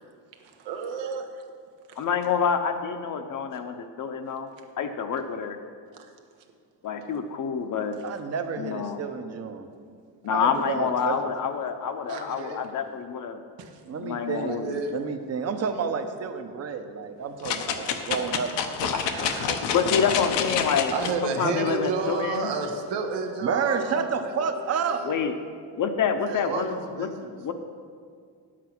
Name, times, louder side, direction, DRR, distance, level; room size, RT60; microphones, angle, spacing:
voice 1, 0.6-1.3 1.9-2.0 5.9-6.1 7.0-7.2 12.1-12.6 13.6-14.1 14.5-14.9 18.9-19.7 20.9-25.2 26.2-27.5, right 4 dB, 90° right, 4 dB, 1.4 m, -32 dB
voice 2, 2.0-4.5 4.8-5.6 6.8-8.0 8.6-9.0 10.2-13.4 14.0-14.8 18.9-19.0 19.7-20.9 21.2-22.5 25.0-25.3 25.8-27.1 27.4-27.5, left 6 dB, 45° left, 7 dB, 0.8 m, -27 dB
voice 3, 8.0-9.7 10.3-11.2 13.9-14.6 14.9-19.6 23.4-25.0, right 6 dB, 35° right, 8 dB, 0.8 m, -30 dB
sound 1, 17.4-21.1 21.7-21.8, left 7 dB, 80° left, 1.0 m, -28 dB
9.9 x 7.6 x 6.0 m, 2.1 s
cardioid pair, 140°, 42 cm